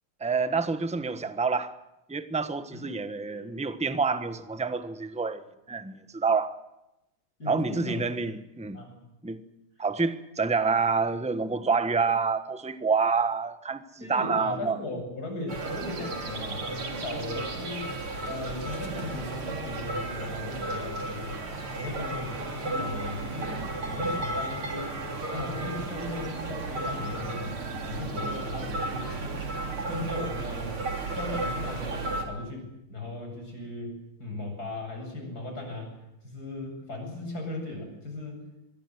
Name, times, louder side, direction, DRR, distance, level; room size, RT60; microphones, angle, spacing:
voice 1, 0.2-1.7 2.1-5.4 5.7-6.5 7.5-8.8 9.2-9.4 9.8-14.8, right 4 dB, 5° right, 0.8 m, -27 dB
voice 2, 7.4-8.0 8.7-9.0 14.0-17.9 18.2-21.5 21.8-23.5 23.8-25.0 25.3-27.6 27.8-29.5 29.8-30.8 31.1-36.0 36.2-38.4, left 2 dB, 45° left, 8.5 m, -37 dB
sound 1, 15.5-32.3, right 2 dB, 75° right, 4.2 m, -34 dB
24.5 x 22.0 x 7.9 m
omnidirectional pair, 2.3 m